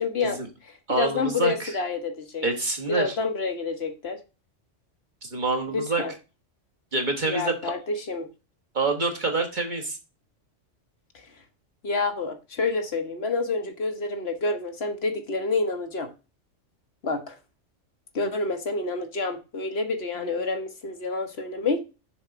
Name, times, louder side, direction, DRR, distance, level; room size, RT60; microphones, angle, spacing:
voice 1, 0.0-0.4 0.6-2.4 2.9-4.2 5.7-6.1 7.3-8.3 11.8-16.1 17.0-17.3 18.1-21.8, left 3 dB, 60° left, 1.2 m, -28 dB
voice 2, 0.9-1.8 2.4-3.2 5.2-6.0 6.9-7.7 8.7-10.0, right 3 dB, 40° right, 1.5 m, -27 dB
6.8 x 3.9 x 5.9 m
omnidirectional pair, 1.3 m